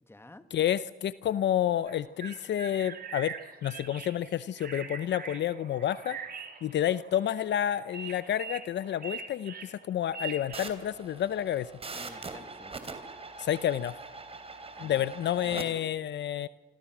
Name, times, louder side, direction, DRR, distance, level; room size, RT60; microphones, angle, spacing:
voice 1, 0.0-0.5 11.9-13.0 14.7-15.1 15.4-15.8, left 2 dB, 10° left, 10 dB, 1.8 m, -52 dB
voice 2, 0.5-3.3 3.6-6.2 6.6-11.7 13.4-13.9 14.8-16.5, left 11 dB, 65° left, 15 dB, 0.7 m, -29 dB
sound 1, 1.9-10.6, right 6 dB, 50° right, 3.2 m, -42 dB
sound 2, 10.5-15.6, right 3 dB, 30° right, 3.3 m, -42 dB
26.5 x 25.0 x 6.2 m, 1.2 s
cardioid pair, 90°, 20 cm